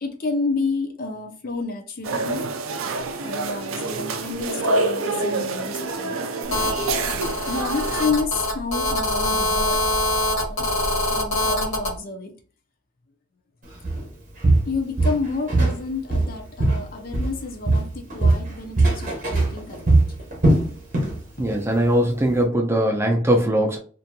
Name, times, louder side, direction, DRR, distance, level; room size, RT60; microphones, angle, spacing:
voice 1, 0.0-2.4 3.2-6.5 7.5-9.8 10.5-10.7 11.1-12.3 14.7-20.0, left 4 dB, 45° left, 4 dB, 0.5 m, -30 dB
sound 1, 2.0-8.1, right 3 dB, 75° right, 0.4 m, -27 dB
Telephone, 6.5-11.9, left 1 dB, 65° left, 1.4 m, -24 dB
Walk footsteps, 13.8-14.1 14.4-15.8 16.1-17.4 17.7-21.2 21.5-21.7 22.2-22.3, right 2 dB, 40° right, 0.9 m, -20 dB
voice 2, 21.4-23.8, right 1 dB, 10° right, 1 dB, 0.5 m, -20 dB
2.9 x 2.6 x 2.2 m, 0.40 s
head